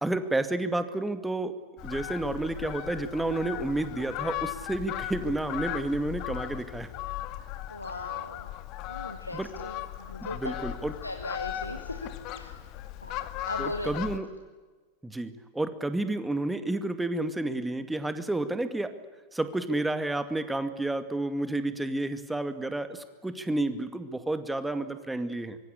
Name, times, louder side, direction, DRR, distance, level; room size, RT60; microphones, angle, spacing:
voice 1, 0.0-1.5 1.8-6.9 9.3-9.5 10.4-10.9 13.6-14.3 15.0-18.9 19.3-25.6, right 2 dB, 5° right, 11 dB, 2.2 m, -30 dB
Fowl, 1.8-14.2, left 13 dB, 40° left, 2.1 m, -37 dB
voice 2, 7.7-8.5 8.9-10.5 11.0-12.7 13.0-13.9, left 2 dB, 85° left, 6 dB, 1.9 m, -39 dB
25.0 x 23.5 x 9.9 m, 1.3 s
figure-of-eight pair, 90°, 0 cm